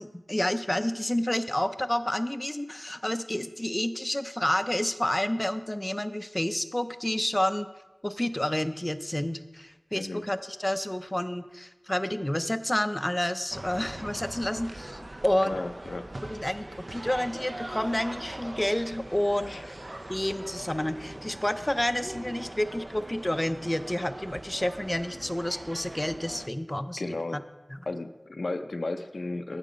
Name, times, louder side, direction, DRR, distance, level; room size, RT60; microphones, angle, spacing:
voice 1, 0.0-7.7 8.0-15.6 16.3-19.8 20.1-27.4, left 1 dB, 20° left, 10 dB, 0.4 m, -29 dB
voice 2, 10.0-10.3 15.4-16.1 19.5-19.6 27.0-27.4 27.9-29.6, left 2 dB, 80° left, 9 dB, 0.4 m, -34 dB
sound 1, 13.5-26.5, right 1 dB, 40° right, 0.5 m, -41 dB
9.1 x 6.6 x 5.1 m, 1.1 s
wide cardioid pair, 60°, 0 cm